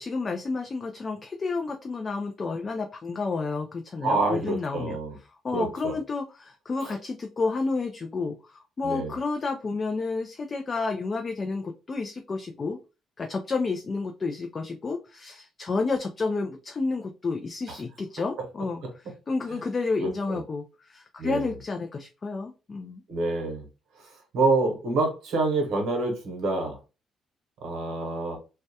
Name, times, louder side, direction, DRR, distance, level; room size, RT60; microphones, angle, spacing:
voice 1, 0.0-5.0 5.4-12.8 13.2-18.8 19.3-23.0, left 3 dB, 35° left, 4 dB, 0.3 m, -30 dB
voice 2, 4.0-5.2 5.5-5.9 6.8-6.9 8.8-9.1 17.7-17.8 18.4-18.5 18.8-18.9 19.5-19.6 20.0-20.4 21.2-21.5 23.1-23.6 24.0-26.8 27.6-28.4, right 3 dB, 80° right, 4 dB, 0.8 m, -27 dB
2.2 x 2.1 x 2.7 m, 0.31 s
cardioid pair, 90°, 0 cm